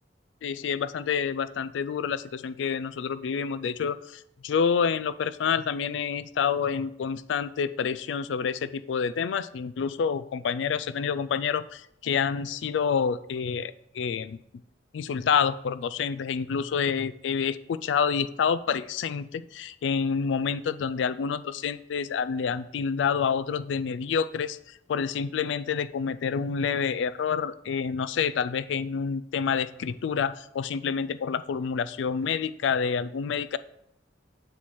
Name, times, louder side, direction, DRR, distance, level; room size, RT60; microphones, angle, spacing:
voice 1, 0.4-14.4 14.9-24.6 24.9-33.6, left 6 dB, 80° left, 15 dB, 0.3 m, -28 dB
7.1 x 4.6 x 4.3 m, 0.74 s
head